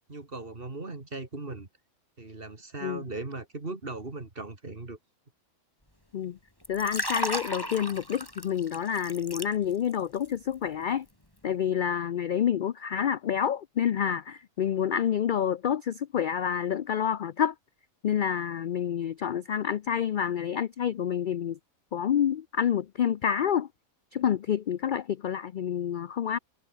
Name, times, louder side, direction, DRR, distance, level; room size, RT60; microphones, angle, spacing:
voice 1, 0.0-1.7 2.2-5.0, right 3 dB, 40° right, 2.9 m, -38 dB
Liquid, 6.6-10.0 10.3-10.5, left 1 dB, 15° left, 5.5 m, -34 dB
voice 2, 6.7-11.1 11.4-17.5 18.0-21.6 21.9-23.7 24.1-26.4, left 9 dB, 65° left, 0.5 m, -28 dB
omnidirectional pair, 1.4 m